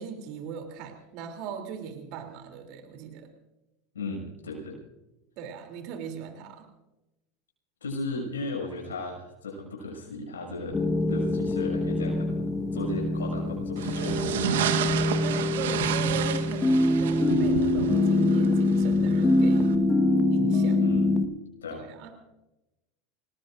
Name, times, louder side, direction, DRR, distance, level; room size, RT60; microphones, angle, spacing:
voice 1, 0.0-3.3 5.4-6.7 15.2-19.7 20.3-20.8 21.7-22.1, right 6 dB, 60° right, 4 dB, 3.3 m, -39 dB
voice 2, 3.9-4.8 7.8-10.8 11.1-12.4 12.7-14.7 20.8-21.2 21.6-21.8, left 2 dB, 85° left, 0 dB, 6.5 m, -35 dB
sound 1, 10.7-21.3, left 2 dB, 20° left, 1.5 m, -24 dB
sound 2, 13.8-19.8, right 10 dB, 75° right, 1.3 m, -31 dB
28.5 x 19.0 x 2.6 m, 0.96 s
hypercardioid pair, 90°, 0 cm